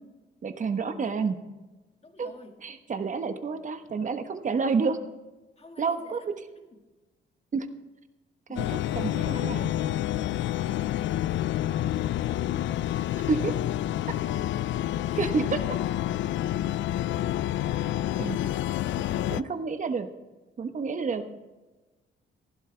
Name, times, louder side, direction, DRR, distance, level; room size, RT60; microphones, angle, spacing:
voice 1, 0.4-1.4 2.2-2.3 2.6-5.0 5.8-6.2 7.5-7.7 8.5-9.7 13.3-13.5 15.2-15.6 18.2-18.5 19.0-20.1 20.6-21.2, right 5 dB, 40° right, 8 dB, 1.2 m, -29 dB
voice 2, 2.0-2.6 5.6-6.9 8.5-8.8 9.2-12.5 14.2-14.6 15.1-15.3 19.5-19.7 21.3-21.4, left 3 dB, 30° left, 4 dB, 2.1 m, -51 dB
sound 1, 8.6-19.4, left 13 dB, 70° left, 0.4 m, -28 dB
15.5 x 11.5 x 3.4 m, 1.2 s
cardioid pair, 90°, 20 cm